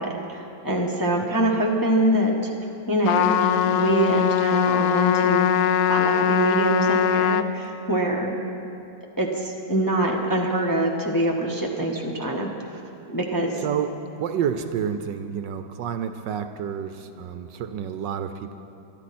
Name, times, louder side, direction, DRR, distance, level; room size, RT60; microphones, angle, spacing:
voice 1, 0.0-2.5 2.9-5.5 5.9-8.4 9.2-12.8 13.1-13.6, right 1 dB, 15° left, -1 dB, 0.9 m, -24 dB
Trumpet, 3.0-7.5, left 9 dB, 80° left, 0.8 m, -21 dB
voice 2, 13.6-18.6, right 8 dB, 70° right, 8 dB, 1.3 m, -29 dB
23.0 x 11.5 x 4.3 m, 2.8 s
omnidirectional pair, 2.1 m